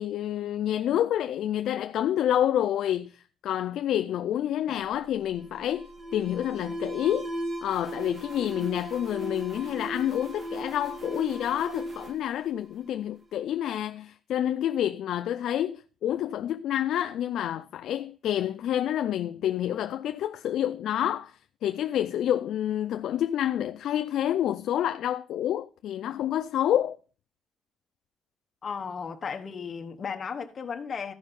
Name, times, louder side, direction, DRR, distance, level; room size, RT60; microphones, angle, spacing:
voice 1, 0.0-7.3 7.6-27.0, left 11 dB, 75° left, 0.4 m, -28 dB
Alarm, 4.7-13.3, right 1 dB, 40° right, 2.5 m, -38 dB
voice 2, 28.6-31.1, left 6 dB, 40° left, 1.1 m, -35 dB
13.5 x 5.5 x 5.3 m
cardioid pair, 130°, 0 cm